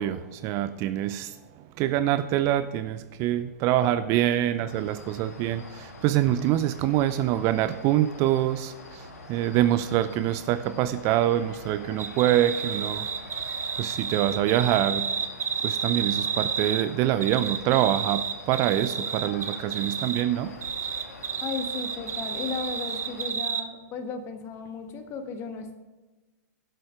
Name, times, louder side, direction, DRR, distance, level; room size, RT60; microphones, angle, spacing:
voice 1, 0.0-13.1 13.8-15.1 15.6-20.5, right 12 dB, 35° right, 12 dB, 0.5 m, -25 dB
sound 1, 4.7-23.3, left 2 dB, 70° left, 2.0 m, -45 dB
sound 2, 12.0-16.8 17.2-20.2 20.6-23.6, right 6 dB, 70° right, 1.0 m, -31 dB
voice 2, 21.4-25.8, left 5 dB, 30° left, 7 dB, 1.3 m, -35 dB
11.5 x 7.7 x 5.1 m, 1.2 s
figure-of-eight pair, 105°, 9 cm